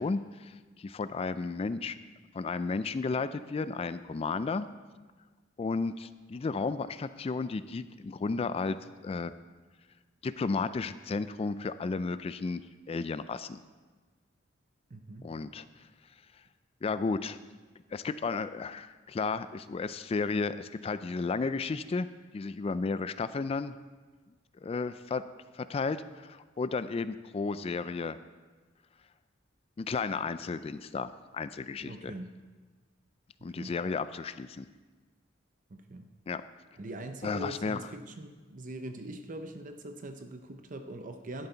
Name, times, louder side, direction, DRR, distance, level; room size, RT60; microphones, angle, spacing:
voice 1, 0.0-2.0 2.3-4.7 5.6-8.8 9.0-9.3 10.2-12.6 12.9-13.6 15.2-15.7 16.8-17.4 17.9-22.1 22.3-23.7 24.6-25.2 25.5-28.2 29.8-32.1 33.4-34.7 36.3-36.4 37.2-37.8, left 4 dB, 30° left, 13 dB, 0.3 m, -33 dB
voice 2, 14.9-15.3 31.8-32.3 33.5-33.7 35.7-36.1 36.8-41.5, right 1 dB, 45° right, 7 dB, 0.7 m, -42 dB
12.5 x 10.5 x 4.0 m, 1.4 s
head